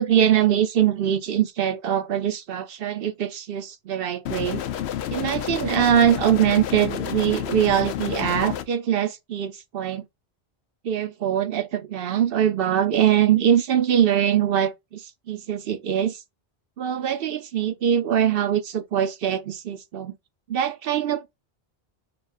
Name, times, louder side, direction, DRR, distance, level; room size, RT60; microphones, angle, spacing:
voice 1, 0.0-4.6 5.1-10.0 10.8-16.2 16.8-20.1 20.5-21.3, right 9 dB, 65° right, 0.8 m, -22 dB
sound 1, 4.3-8.7, left 11 dB, 85° left, 0.8 m, -30 dB
6.8 x 2.3 x 2.4 m
omnidirectional pair, 1.1 m